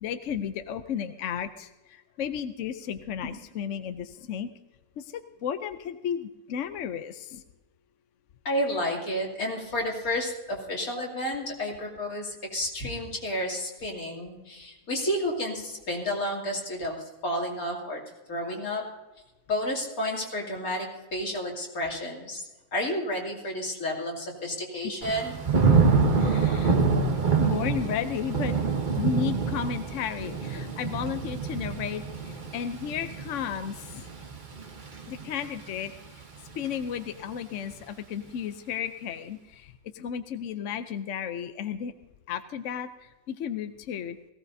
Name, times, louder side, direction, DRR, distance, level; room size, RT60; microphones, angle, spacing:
voice 1, 0.0-4.5 5.0-7.4 26.2-26.8 27.4-28.6 29.0-34.0 35.1-36.2 36.5-41.9 42.3-44.2, left 8 dB, 65° left, 9 dB, 0.9 m, -33 dB
voice 2, 8.4-18.0 18.3-18.8 19.5-25.3, left 1 dB, 90° left, -2 dB, 3.1 m, -31 dB
Thunder / Rain, 25.0-35.9 36.4-36.8, right 5 dB, 35° right, 1.1 m, -26 dB
18.5 x 16.5 x 2.7 m, 1.1 s
omnidirectional pair, 1.5 m